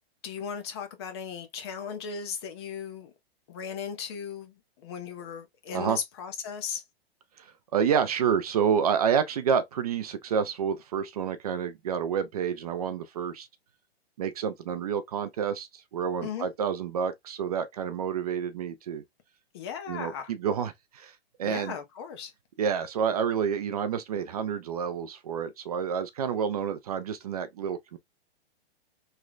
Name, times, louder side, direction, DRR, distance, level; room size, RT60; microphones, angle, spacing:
voice 1, 0.2-3.1 3.5-6.8 16.2-16.5 19.5-20.3 21.4-22.3, left 7 dB, 25° left, 0.5 m, -37 dB
voice 2, 7.4-13.5 14.2-19.0 19.9-21.1 21.4-21.8 22.6-28.0, right 7 dB, 40° right, 0.4 m, -29 dB
3.2 x 2.1 x 3.6 m
hypercardioid pair, 155°, 32 cm